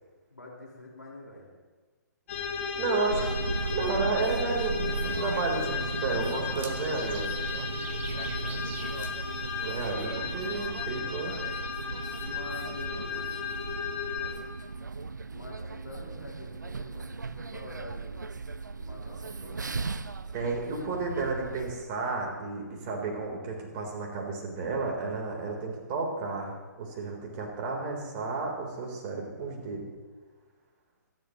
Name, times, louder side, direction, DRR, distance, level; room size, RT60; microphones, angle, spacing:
voice 1, 0.3-1.5 8.1-9.2 12.2-13.5 15.3-18.2 18.7-19.6, left 2 dB, 90° left, -2 dB, 4.9 m, -46 dB
sound 1, 2.3-14.3, left 6 dB, 45° left, 5.0 m, -35 dB
voice 2, 2.8-3.2 3.7-7.3 9.6-11.3 20.3-29.9, right 4 dB, 35° right, 0 dB, 3.8 m, -32 dB
sound 2, 3.1-21.8, right 4 dB, 85° right, 0.6 m, -36 dB
sound 3, 4.5-9.9, right 8 dB, 20° right, 0.7 m, -47 dB
26.5 x 11.0 x 3.1 m, 1.4 s
figure-of-eight pair, 130°, 10 cm